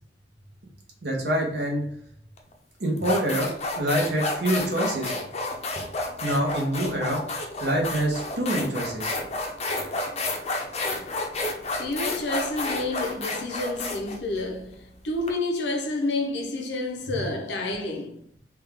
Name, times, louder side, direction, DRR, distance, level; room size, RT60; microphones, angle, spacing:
voice 1, 1.0-1.8 2.8-5.1 6.2-7.2 7.6-9.2, right 1 dB, 75° right, 1.0 m, -26 dB
sound 1, 2.4-2.5 3.0-15.3, left 2 dB, 35° left, 0.5 m, -30 dB
voice 2, 11.8-18.2, left 2 dB, 80° left, 0.7 m, -29 dB
3.5 x 2.3 x 3.5 m
head